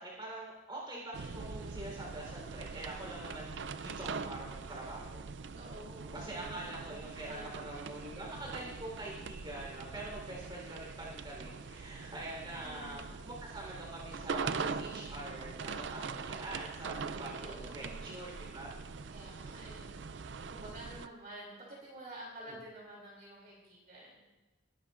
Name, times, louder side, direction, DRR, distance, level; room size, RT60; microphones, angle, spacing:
voice 1, 0.0-3.5 3.7-5.3 6.1-18.7 19.0-19.7, right 1 dB, 20° right, -3 dB, 3.9 m, -45 dB
sound 1, 1.1-21.1, right 5 dB, 65° right, 0.5 m, -42 dB
voice 2, 5.5-8.0 12.5-13.1 17.3-18.2 19.1-24.2, right 1 dB, 45° right, -4 dB, 3.0 m, -50 dB
20.0 x 11.0 x 2.5 m, 1.1 s
head